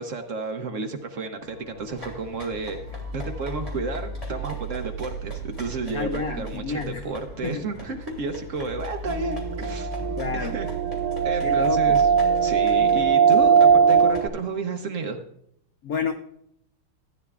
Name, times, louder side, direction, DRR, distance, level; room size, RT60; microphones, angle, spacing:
voice 1, 0.0-2.8 3.1-10.0 10.3-10.7 11.2-12.1 12.4-15.2, right 3 dB, 65° right, 5 dB, 0.8 m, -32 dB
sound 1, 1.4-13.1, right 3 dB, 40° left, 3.9 m, -37 dB
sound 2, 1.8-14.2, equal, 15° left, 2.3 m, -43 dB
voice 2, 5.9-7.0 7.4-7.7 10.2-10.5 11.4-12.0 15.8-16.1, left 6 dB, 80° left, 7 dB, 0.8 m, -30 dB
sound 3, 9.0-14.3, right 6 dB, 80° right, 2.1 m, -20 dB
14.5 x 9.5 x 2.3 m, 0.71 s
omnidirectional pair, 2.3 m